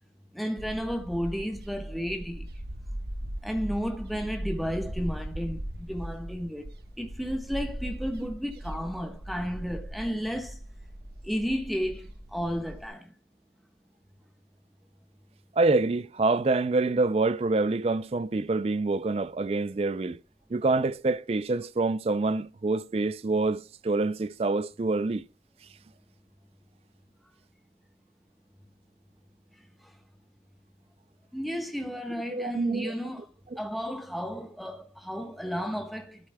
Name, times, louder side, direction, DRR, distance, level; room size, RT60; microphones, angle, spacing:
voice 1, 0.3-2.5 3.4-6.7 7.0-10.6 11.2-13.1 29.8-29.9 31.3-33.3 33.6-36.3, equal, ahead, 1.1 m, -33 dB
sound 1, 0.6-12.8, right 1 dB, 60° right, 1.2 m, -39 dB
voice 2, 15.6-20.2 20.5-25.3 32.3-32.9, right 3 dB, 35° right, 0.3 m, -26 dB
13.0 x 8.0 x 2.2 m
head